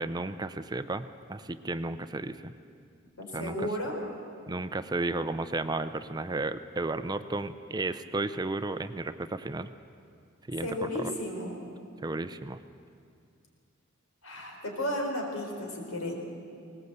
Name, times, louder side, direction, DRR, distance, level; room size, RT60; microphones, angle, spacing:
voice 1, 0.0-2.5 3.3-3.7 4.5-9.7 10.5-11.1 12.0-12.6, right 2 dB, 20° right, 11 dB, 0.5 m, -33 dB
voice 2, 3.2-4.0 10.6-11.6 14.2-16.1, left 1 dB, 85° left, 1 dB, 4.5 m, -33 dB
20.5 x 18.5 x 8.0 m, 2.4 s
head